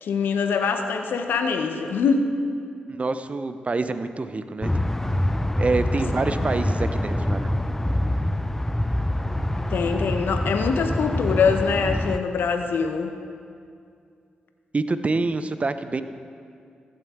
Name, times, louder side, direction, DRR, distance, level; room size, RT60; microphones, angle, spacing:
voice 1, 0.0-2.3 9.7-13.1, left 5 dB, 75° left, 6 dB, 0.7 m, -23 dB
voice 2, 2.9-4.7 5.6-7.5 14.7-16.0, right 3 dB, 40° right, 11 dB, 0.6 m, -26 dB
sound 1, 4.6-12.2, left 1 dB, 10° left, 0.5 m, -25 dB
15.0 x 7.7 x 3.6 m, 2.3 s
supercardioid pair, 45°, 4 cm